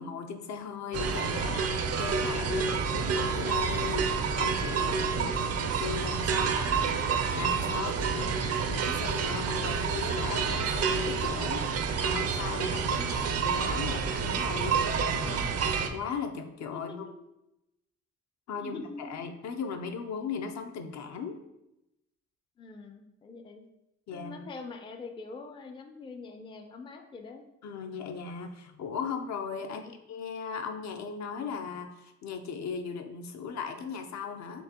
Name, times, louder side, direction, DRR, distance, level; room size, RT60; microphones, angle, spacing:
voice 1, 0.0-7.0 7.3-8.4 8.7-11.7 12.0-13.0 13.4-15.4 15.9-17.1 18.5-21.4 24.1-24.5 27.6-34.6, left 6 dB, 65° left, 5 dB, 0.5 m, -37 dB
sound 1, 0.9-15.9, right 6 dB, 55° right, 0.5 m, -29 dB
voice 2, 8.1-8.5 11.6-11.8 12.9-13.2 15.2-15.5 16.7-17.2 18.5-19.2 22.6-23.6 24.1-27.4 29.6-29.9, left 4 dB, 15° left, 5 dB, 0.4 m, -44 dB
4.5 x 2.9 x 2.8 m, 0.88 s
cardioid pair, 90°, 30 cm